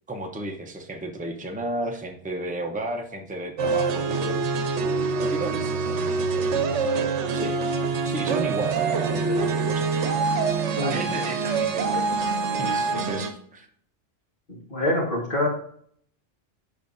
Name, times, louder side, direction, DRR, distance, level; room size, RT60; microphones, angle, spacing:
voice 1, 0.1-4.7 5.2-7.6 8.0-10.1 10.7-13.7, right 1 dB, 10° right, 2 dB, 0.7 m, -34 dB
sound 1, 3.6-13.3, right 4 dB, 70° right, 1.1 m, -25 dB
voice 2, 14.7-15.5, left 1 dB, 45° left, -2 dB, 2.0 m, -24 dB
10.0 x 5.4 x 2.7 m, 0.62 s
omnidirectional pair, 1.2 m